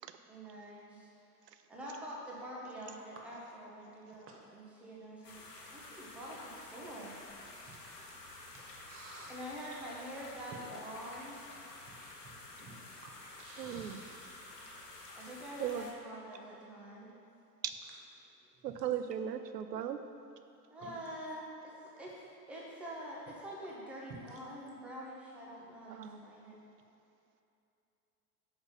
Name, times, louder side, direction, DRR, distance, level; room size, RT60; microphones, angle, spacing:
voice 1, 0.3-1.1 1.7-5.4 5.7-7.2 9.3-11.4 15.2-17.1 20.7-22.2 22.5-26.6, equal, 5° right, -5 dB, 0.3 m, -46 dB
sound 1, 5.2-15.9, left 2 dB, 80° left, 1.0 m, -51 dB
voice 2, 7.7-9.3 9.7-9.8 11.1-11.2 11.9-15.3 18.2-18.8 20.8-21.0 24.1-24.4, right 2 dB, 25° right, -1 dB, 1.1 m, -55 dB
voice 3, 13.6-14.0 15.6-15.9 17.6-17.7 18.6-20.0 25.9-26.2, right 9 dB, 80° right, 9 dB, 0.5 m, -37 dB
5.3 x 3.9 x 5.3 m, 2.7 s
figure-of-eight pair, 90°, 48 cm